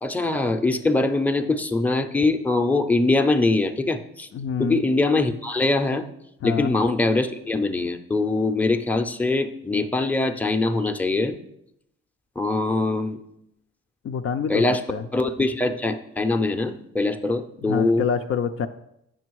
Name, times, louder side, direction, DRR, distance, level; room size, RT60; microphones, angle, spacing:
voice 1, 0.0-4.3 4.6-6.1 6.4-11.3 12.4-13.2 14.5-14.8 15.1-18.1, left 2 dB, 5° left, 6 dB, 0.6 m, -23 dB
voice 2, 4.3-4.8 6.4-6.7 14.0-14.6 14.9-15.0 17.6-18.7, left 6 dB, 50° left, 7 dB, 0.5 m, -26 dB
7.8 x 5.9 x 4.7 m, 0.81 s
cardioid pair, 90°, 30 cm